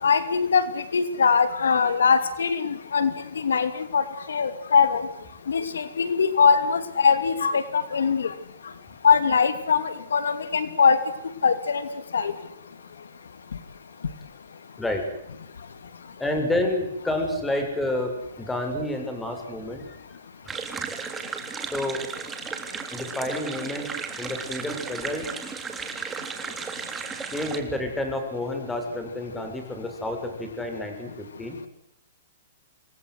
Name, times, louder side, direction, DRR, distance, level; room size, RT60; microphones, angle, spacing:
voice 1, 0.0-5.1 5.5-8.3 9.0-11.0 11.4-11.9 12.1-12.3, left 6 dB, 90° left, 11 dB, 2.9 m, -22 dB
voice 2, 14.8-15.1 16.2-20.0 20.4-20.5 21.7-22.0 22.9-23.9 24.2-25.3 27.3-31.6, left 1 dB, 5° left, 5 dB, 7.0 m, -29 dB
sound 1, 20.5-27.6, right 5 dB, 15° right, 3.4 m, -34 dB
28.0 x 21.0 x 8.1 m, 0.76 s
hypercardioid pair, 140°, 0 cm